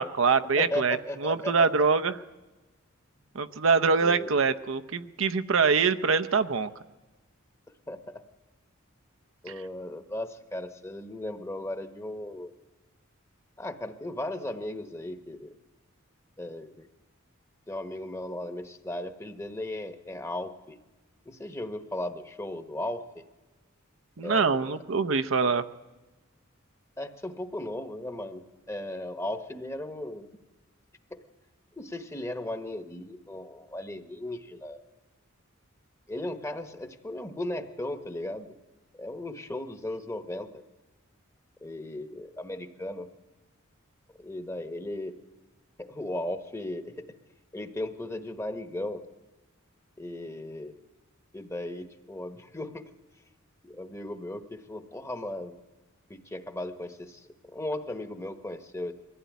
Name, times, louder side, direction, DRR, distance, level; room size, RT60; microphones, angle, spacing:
voice 1, 0.0-2.1 3.3-6.7 9.5-9.6 24.2-25.6, right 5 dB, 70° right, 10 dB, 0.8 m, -24 dB
voice 2, 0.6-1.7 4.0-4.3 7.9-8.2 9.4-12.5 13.6-15.5 16.4-16.9 17.7-20.8 21.2-23.2 24.2-24.7 27.0-30.3 31.1-31.2 31.8-34.8 36.1-38.5 38.9-40.6 41.6-43.1 44.2-45.2 45.8-47.1 47.5-49.1 50.0-50.8 51.3-52.9 53.6-55.5 56.1-58.9, left 1 dB, 15° left, 8 dB, 1.1 m, -36 dB
22.0 x 15.5 x 9.4 m, 1.2 s
head